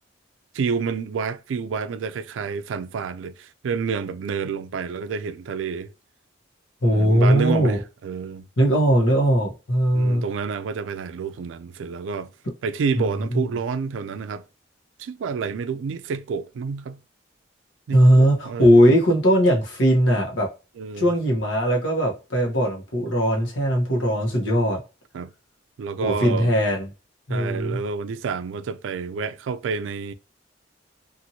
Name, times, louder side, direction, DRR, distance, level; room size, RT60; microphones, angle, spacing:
voice 1, 0.5-5.9 6.9-8.5 9.9-12.3 12.6-14.5 15.0-17.0 17.9-18.7 20.8-21.1 25.1-25.3 25.8-26.5 27.3-30.1, right 5 dB, 80° right, 0.3 m, -29 dB
voice 2, 6.8-7.8 8.6-10.2 13.0-13.4 17.9-20.5 21.0-24.8 26.0-26.9 27.3-27.8, equal, 80° left, 1.0 m, -19 dB
2.8 x 2.5 x 2.7 m
head